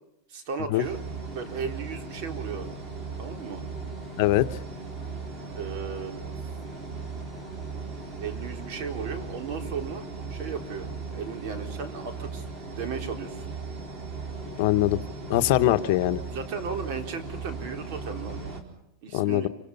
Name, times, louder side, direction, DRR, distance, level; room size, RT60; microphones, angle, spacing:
voice 1, 0.3-1.0 1.3-2.7 3.2-3.6 5.5-6.3 8.0-12.4 12.8-13.4 16.0-18.4 19.0-19.5, right 6 dB, 55° right, 6 dB, 4.0 m, -36 dB
sound 1, 0.8-18.6, right 4 dB, 30° right, 4.2 m, -37 dB
voice 2, 14.6-15.0 15.3-16.2 19.1-19.5, left 16 dB, 60° left, 12 dB, 1.1 m, -22 dB
27.0 x 25.0 x 5.5 m, 0.82 s
supercardioid pair, 150°, 0 cm